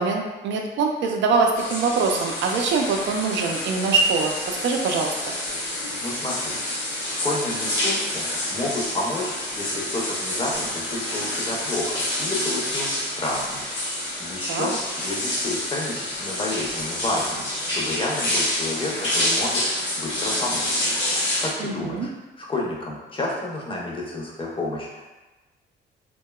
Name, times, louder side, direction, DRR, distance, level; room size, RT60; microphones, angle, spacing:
voice 1, 0.0-5.1 14.5-14.7 21.6-22.1, right 4 dB, 70° right, 2 dB, 0.4 m, -23 dB
sound 1, 1.5-21.5, left 1 dB, 65° left, 0.7 m, -28 dB
voice 2, 6.0-6.6 7.1-13.6 13.9-17.4 17.7-20.8 21.1-22.1 22.4-25.0, left 2 dB, 25° left, -3 dB, 0.6 m, -30 dB
2.7 x 2.2 x 2.2 m, 1.1 s
cardioid pair, 90°, 20 cm